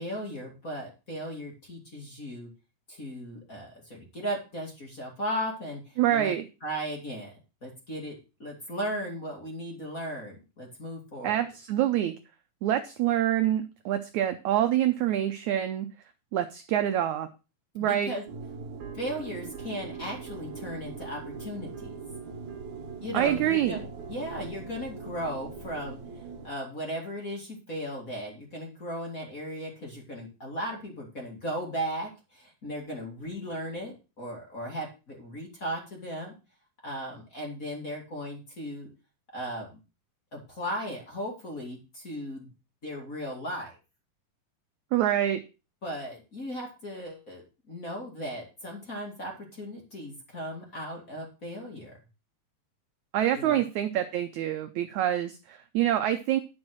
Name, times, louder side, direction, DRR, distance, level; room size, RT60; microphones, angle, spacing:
voice 1, 0.0-2.5 2.9-6.3 6.6-7.3 7.6-11.4 17.9-18.2 18.9-21.9 23.0-36.3 36.8-38.9 39.3-39.8 40.3-42.5 42.8-43.7 45.8-51.9 53.3-53.6, equal, 25° left, 0 dB, 2.2 m, -36 dB
voice 2, 6.0-6.4 11.2-12.1 12.6-15.9 16.3-17.3 17.7-18.1 23.1-23.8 44.9-45.4 53.1-56.4, right 11 dB, 80° right, 8 dB, 1.7 m, -26 dB
sound 1, 18.3-26.5, right 5 dB, 60° right, 2.7 m, -41 dB
10.5 x 5.3 x 6.2 m, 0.30 s
omnidirectional pair, 4.2 m